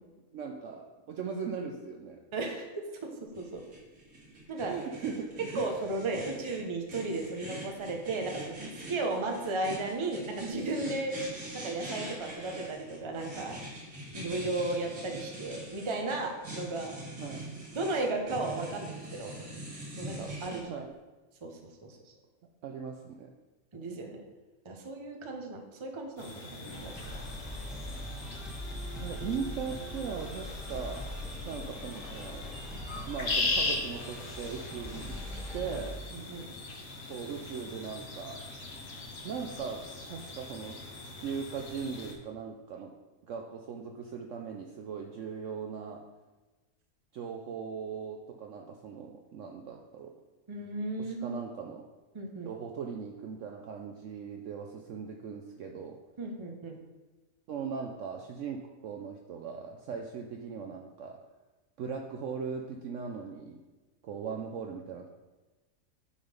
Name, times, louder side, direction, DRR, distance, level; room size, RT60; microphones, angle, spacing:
voice 1, 0.3-2.2 4.5-5.6 17.2-17.5 20.7-21.0 22.6-23.3 29.0-31.1 31.4-32.5 33.1-35.2 35.5-36.1 37.1-38.4 39.2-43.0 43.3-46.0 47.1-50.1 51.0-51.9 52.4-56.0 57.5-61.2 61.8-63.6 64.0-65.1, right 6 dB, 65° right, 3 dB, 0.8 m, -39 dB
voice 2, 2.3-3.6 4.5-4.7 5.5-11.1 11.5-13.6 14.1-16.9 17.7-19.4 20.0-20.6 21.4-22.0 23.7-24.2 24.6-26.9 36.1-36.5 50.5-51.4 52.1-52.5 56.2-56.8, right 2 dB, 25° right, 3 dB, 0.6 m, -35 dB
sound 1, 3.4-20.6, right 1 dB, 85° right, 2.5 m, -43 dB
sound 2, 26.2-42.1, left 2 dB, 45° left, 1.2 m, -39 dB
sound 3, 26.7-35.9, equal, ahead, 1.0 m, -42 dB
8.6 x 3.8 x 5.2 m, 1.2 s
omnidirectional pair, 1.6 m